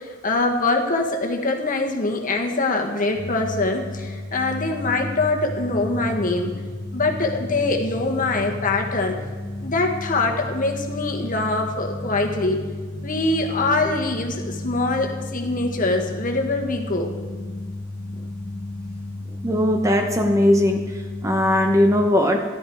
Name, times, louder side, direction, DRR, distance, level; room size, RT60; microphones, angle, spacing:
voice 1, 0.0-6.5 6.9-9.2 9.6-12.7 13.0-17.1, left 2 dB, 40° left, 2 dB, 1.6 m, -23 dB
sound 1, 3.1-22.1, left 2 dB, 15° left, 0.7 m, -33 dB
voice 2, 19.4-20.9 21.2-22.4, left 1 dB, 15° right, 4 dB, 0.9 m, -19 dB
14.0 x 12.0 x 4.7 m, 1.5 s
head